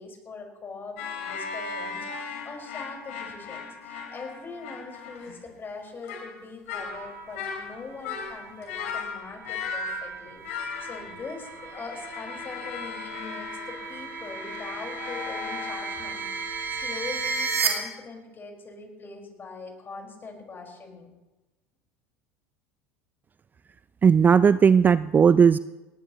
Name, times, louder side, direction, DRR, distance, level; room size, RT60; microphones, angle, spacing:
voice 1, 0.0-21.1, left 4 dB, 30° left, 2 dB, 4.9 m, -42 dB
sound 1, 1.0-5.4 6.0-6.4 6.7-7.1 7.3-10.2 10.4-16.6, left 5 dB, 70° left, 3.3 m, -37 dB
sound 2, 6.7-17.7, right 5 dB, 85° right, 2.2 m, -35 dB
voice 2, 24.0-25.6, right 6 dB, 25° right, 16 dB, 0.4 m, -17 dB
19.0 x 19.0 x 3.0 m, 1.1 s
hypercardioid pair, 75°, 7 cm